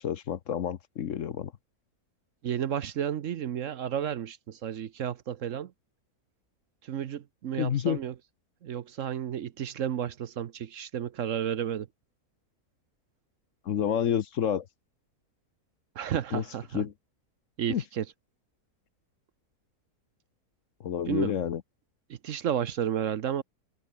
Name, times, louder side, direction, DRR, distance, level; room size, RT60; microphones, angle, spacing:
voice 1, 0.0-1.5 7.6-8.0 13.6-14.7 16.3-16.4 16.7-16.9 17.7-17.8 20.8-21.6, left 9 dB, 60° left, 1.1 m, -29 dB
voice 2, 2.4-5.7 6.8-8.1 8.6-11.9 16.0-16.8 17.6-18.0 21.1-21.3 22.1-23.4, right 9 dB, 60° right, 1.1 m, -32 dB
omnidirectional pair, 1.6 m